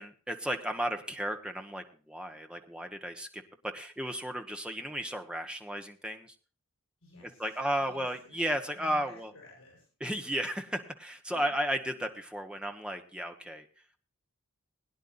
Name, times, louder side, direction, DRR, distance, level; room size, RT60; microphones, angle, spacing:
voice 1, 0.0-6.3 7.4-9.3 10.0-13.7, equal, 5° right, 5 dB, 1.2 m, -34 dB
voice 2, 7.0-10.3 11.3-11.5, left 2 dB, 70° left, -1 dB, 6.7 m, -55 dB
21.5 x 10.5 x 2.6 m, 0.38 s
head